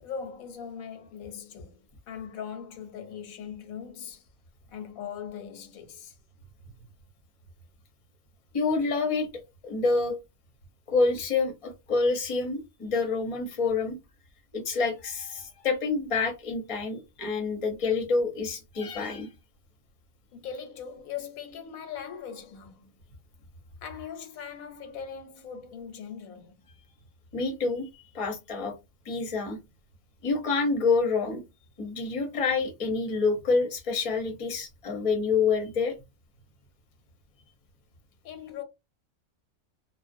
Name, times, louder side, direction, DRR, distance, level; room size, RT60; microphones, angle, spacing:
voice 1, 0.0-4.3 4.7-6.2 20.3-22.9 23.8-26.6 38.2-38.6, left 7 dB, 85° left, 1.1 m, -40 dB
voice 2, 8.5-9.3 9.6-10.2 10.9-13.9 14.5-19.3 27.3-27.9 28.1-28.7 29.0-29.6 30.2-31.4 31.8-35.9, left 4 dB, 35° left, 0.6 m, -27 dB
2.4 x 2.1 x 2.5 m
omnidirectional pair, 1.4 m